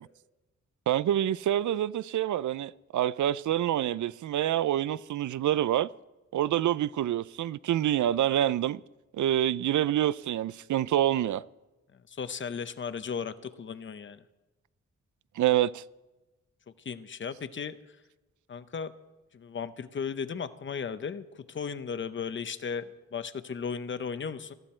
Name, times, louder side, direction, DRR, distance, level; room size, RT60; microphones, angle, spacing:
voice 1, 0.9-5.9 6.3-8.8 9.1-11.4 15.4-15.8, right 12 dB, 85° right, 0.5 m, -27 dB
voice 2, 12.1-14.2 16.8-17.8 18.5-18.9 19.3-24.5, left 6 dB, 40° left, 0.8 m, -36 dB
19.0 x 14.5 x 4.4 m
wide cardioid pair, 175°, 29 cm